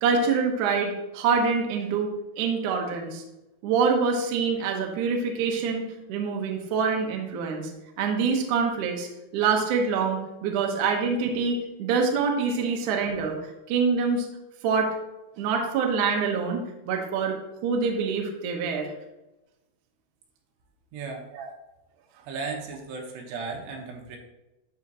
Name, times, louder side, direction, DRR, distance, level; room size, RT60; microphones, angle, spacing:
voice 1, 0.0-2.1 2.4-3.2 3.6-7.7 8.0-13.4 13.7-14.3 14.6-15.0 15.4-17.4 17.6-18.9 21.3-21.5, right 5 dB, 70° right, 1 dB, 2.0 m, -25 dB
voice 2, 20.9-21.3 22.3-24.2, right 4 dB, 85° right, 2 dB, 3.2 m, -35 dB
12.0 x 5.1 x 2.9 m, 0.97 s
omnidirectional pair, 4.8 m